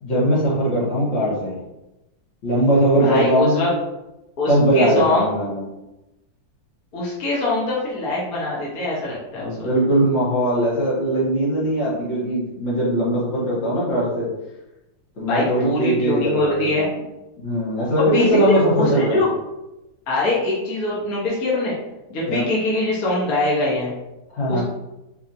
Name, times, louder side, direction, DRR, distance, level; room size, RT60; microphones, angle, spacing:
voice 1, 0.0-1.5 2.4-3.7 4.5-5.6 9.4-14.3 15.2-17.0 17.4-19.2 22.3-22.4 24.3-24.6, right 1 dB, 80° left, -7 dB, 2.1 m, -20 dB
voice 2, 3.0-3.7 4.4-5.3 6.9-9.7 15.2-16.9 17.8-19.3 20.1-21.8 22.1-23.9 24.5-24.6, left 2 dB, 55° left, -6 dB, 1.4 m, -23 dB
4.2 x 2.8 x 2.5 m, 0.96 s
omnidirectional pair, 2.0 m